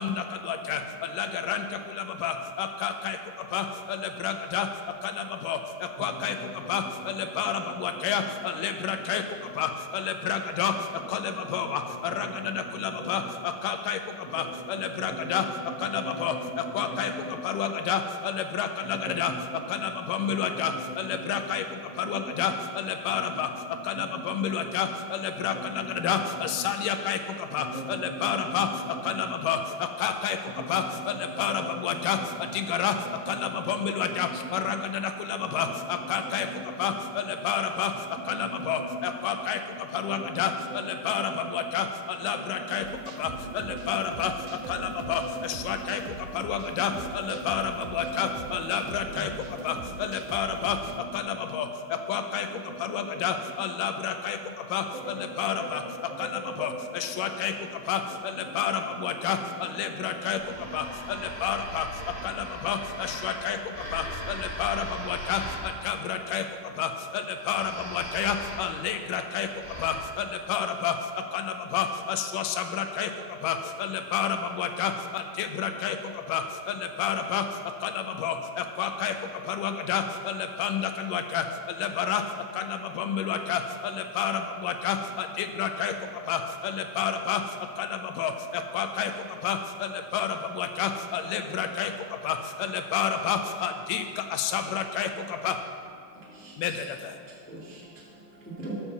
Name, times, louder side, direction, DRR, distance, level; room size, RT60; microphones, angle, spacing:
voice 1, 0.0-15.5 15.8-19.3 19.7-23.5 23.8-28.7 29.0-33.0 33.3-36.5 36.8-37.9 38.3-42.9 43.2-44.3 44.7-49.3 49.6-50.8 51.1-55.8 56.2-95.6 96.6-97.2, left 8 dB, 80° left, 7 dB, 2.1 m, -30 dB
voice 2, 6.0-6.8 7.3-8.4 9.0-9.4 11.0-11.7 12.1-12.2 12.4-12.6 13.0-13.2 14.3-17.3 18.8-21.4 21.9-22.7 23.1-24.1 24.4-24.7 25.4-25.9 26.3-26.7 27.6-28.8 29.1-29.3 30.6-30.7 31.1-31.9 32.2-32.6 32.9-33.4 33.7-34.7 35.4-35.7 36.1-36.9 38.2-39.4 39.8-40.8 41.2-41.6 42.2-43.9 44.4-46.1 46.7-46.9 47.3-48.6 49.3-49.6 50.0-50.1 50.8-51.5 51.9-52.3 52.7-53.2 54.7-55.1 55.5-55.8 56.1-56.7 57.2-57.3 58.7-59.0 60.2-61.5 62.2-62.5 63.0-63.1, right 2 dB, 65° right, 0 dB, 2.3 m, -41 dB
sound 1, 42.8-51.0, right 5 dB, 80° right, 1.6 m, -42 dB
sound 2, 60.3-66.1 67.3-70.0, equal, 15° right, 1.5 m, -40 dB
voice 3, 96.1-96.8 97.2-98.7, right 2 dB, 10° left, -6 dB, 0.7 m, -44 dB
12.5 x 4.6 x 6.8 m, 2.3 s
omnidirectional pair, 4.0 m